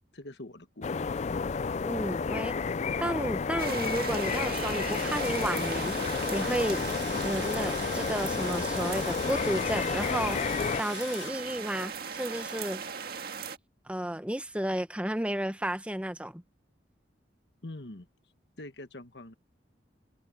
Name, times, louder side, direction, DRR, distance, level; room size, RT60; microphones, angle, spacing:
voice 1, 0.1-1.0 17.6-18.1 18.6-19.3, left 2 dB, 65° left, 1.5 m, -44 dB
sound 1, 0.8-10.8, left 5 dB, 40° left, 0.4 m, -31 dB
voice 2, 1.8-2.6 3.0-5.9 6.3-6.8 7.2-12.8 13.9-16.4, right 1 dB, 5° right, 1.0 m, -32 dB
sound 2, 3.6-13.6, right 6 dB, 55° right, 1.9 m, -38 dB
Tools, 4.6-11.3, left 8 dB, 80° left, 1.9 m, -42 dB
head